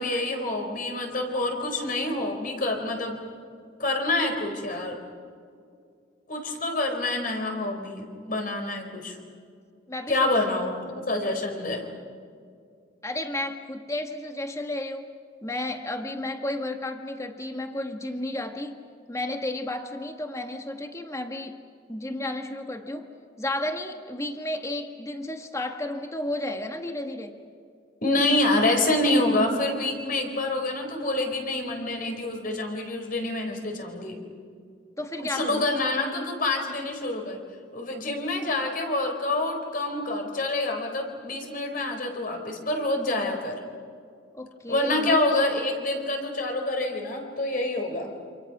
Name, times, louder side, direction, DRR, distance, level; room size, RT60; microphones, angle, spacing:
voice 1, 0.0-3.2 3.8-5.0 6.3-9.2 10.1-11.9 28.0-34.2 35.3-37.4 37.7-43.5 44.7-48.1, left 2 dB, 50° left, 3 dB, 4.3 m, -27 dB
voice 2, 9.9-10.2 13.0-15.1 15.4-18.8 19.1-21.6 21.9-23.1 23.4-27.4 35.0-35.7 44.3-45.2, left 1 dB, 15° left, 5 dB, 1.7 m, -32 dB
28.5 x 27.5 x 6.1 m, 2.3 s
head